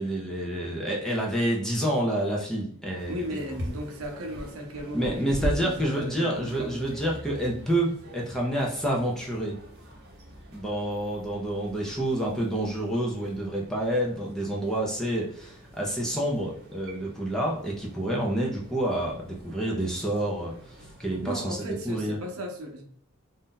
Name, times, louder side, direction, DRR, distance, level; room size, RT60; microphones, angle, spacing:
voice 1, 0.0-3.2 4.9-9.6 10.5-20.5 21.0-22.2, right 1 dB, ahead, -3 dB, 0.6 m, -28 dB
sound 1, 3.0-21.7, right 1 dB, 50° right, 0.9 m, -42 dB
voice 2, 3.1-7.0 21.2-22.8, equal, 80° right, 2 dB, 0.7 m, -36 dB
2.7 x 2.3 x 3.7 m, 0.63 s
head